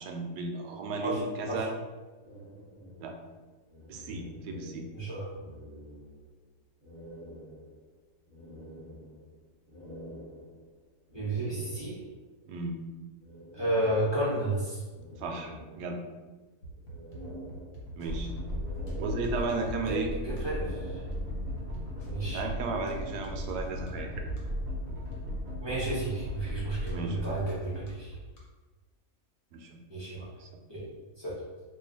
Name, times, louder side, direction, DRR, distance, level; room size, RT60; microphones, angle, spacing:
voice 1, 0.0-1.7 3.0-3.1 3.9-4.9 12.5-12.8 15.2-16.0 18.0-18.3 19.0-20.1 22.3-24.2 26.9-27.3 29.5-29.8 30.4-30.5, right 3 dB, 90° right, 2 dB, 1.1 m, -34 dB
sound 1, 2.2-5.0 5.3-6.4 6.8-12.2 13.2-14.5 14.9-16.2 16.6-18.1 18.4-19.8 20.2-21.5, equal, 20° right, 1.0 m, -48 dB
voice 2, 4.9-5.2 11.1-12.0 13.5-14.8 19.9-20.0 20.2-21.0 22.1-22.4 25.6-28.1 29.9-30.2 30.7-30.8 31.2-31.4, right 1 dB, 20° left, -10 dB, 0.7 m, -32 dB
sound 2, 16.6-28.4, right 1 dB, 80° left, 1.5 m, -46 dB
sound 3, 18.1-27.4, equal, 65° right, 1.2 m, -36 dB
3.1 x 2.3 x 3.8 m, 1.3 s
omnidirectional pair, 1.6 m